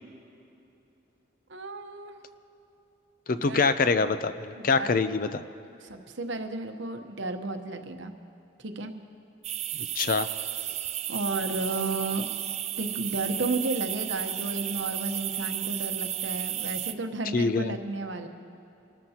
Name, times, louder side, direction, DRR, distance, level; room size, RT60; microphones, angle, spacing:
voice 1, 1.5-2.1 3.4-3.6 4.6-5.0 5.6-8.1 8.6-8.9 11.1-12.3 12.8-18.3, right 2 dB, 65° right, 6 dB, 1.0 m, -33 dB
voice 2, 3.3-5.4 9.8-10.3 17.3-17.8, left 4 dB, 45° left, 11 dB, 0.5 m, -25 dB
sound 1, 9.4-16.9, right 11 dB, 30° right, 0.4 m, -33 dB
26.0 x 13.5 x 2.9 m, 2.9 s
head